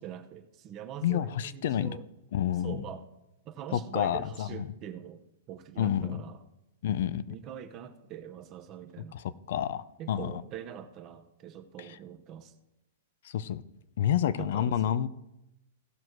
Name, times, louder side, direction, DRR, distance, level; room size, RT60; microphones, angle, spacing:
voice 1, 0.0-2.0 2.6-3.0 3.5-5.2 5.5-6.4 7.3-9.2 10.0-12.5 14.4-14.9, right 9 dB, 30° right, 6 dB, 0.9 m, -43 dB
voice 2, 1.0-2.0 2.3-2.8 3.7-4.7 5.8-6.2 6.8-7.4 9.1-10.3 11.8-12.0 13.2-13.6 14.0-15.1, left 10 dB, 60° left, 16 dB, 0.6 m, -29 dB
16.5 x 6.2 x 4.6 m, 0.93 s
hypercardioid pair, 155°, 0 cm